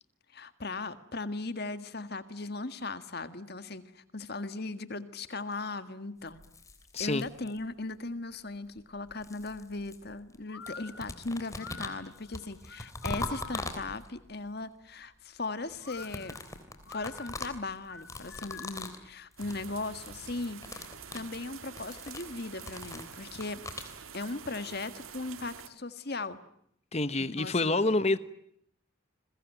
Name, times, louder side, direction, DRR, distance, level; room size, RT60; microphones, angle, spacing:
voice 1, 0.3-6.4 7.0-16.4 16.9-26.4 27.2-27.7, left 3 dB, 50° left, 11 dB, 1.8 m, -38 dB
sound 1, 6.3-7.8 8.8-10.4 10.6-14.3 15.7-19.0 19.3-19.6 19.9-20.2 20.5-23.9, left 2 dB, 15° left, 3.3 m, -42 dB
voice 2, 6.9-7.3 26.9-28.2, left 2 dB, 30° left, 13 dB, 1.0 m, -27 dB
sound 2, 10.5-13.8 15.8-18.9, left 5 dB, 75° left, 1.7 m, -48 dB
sound 3, 19.4-25.7, right 7 dB, 90° right, 1.8 m, -47 dB
29.5 x 21.5 x 9.2 m, 0.73 s
head